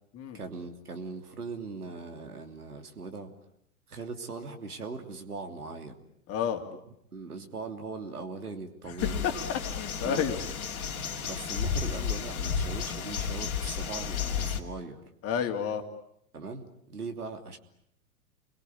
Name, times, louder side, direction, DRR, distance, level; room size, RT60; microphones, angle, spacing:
voice 1, 0.3-3.3 3.9-6.0 6.7-6.8 7.1-9.3 10.0-10.3 11.2-15.0 16.3-17.6, right 4 dB, 85° right, 5 dB, 3.1 m, -40 dB
voice 2, 6.3-6.6 9.0-10.4 15.2-15.8, left 8 dB, 30° left, 5 dB, 3.0 m, -30 dB
sound 1, 9.0-14.6, left 7 dB, 70° left, 2.8 m, -32 dB
29.5 x 22.5 x 8.6 m, 0.75 s
figure-of-eight pair, 100°, 44 cm